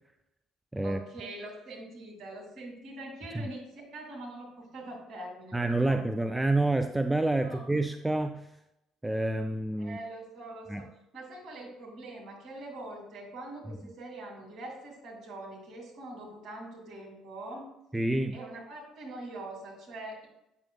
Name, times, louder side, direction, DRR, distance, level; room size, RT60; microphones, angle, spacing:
voice 1, 0.8-5.6 5.8-6.0 7.4-7.7 9.8-10.9 11.1-17.7 18.3-20.3, right 2 dB, 50° right, -2 dB, 2.1 m, -43 dB
voice 2, 5.5-8.5 9.0-10.0 10.7-10.8 17.9-18.4, right 2 dB, 10° right, 7 dB, 0.3 m, -28 dB
8.4 x 6.0 x 2.2 m, 0.88 s
figure-of-eight pair, 50°, 0 cm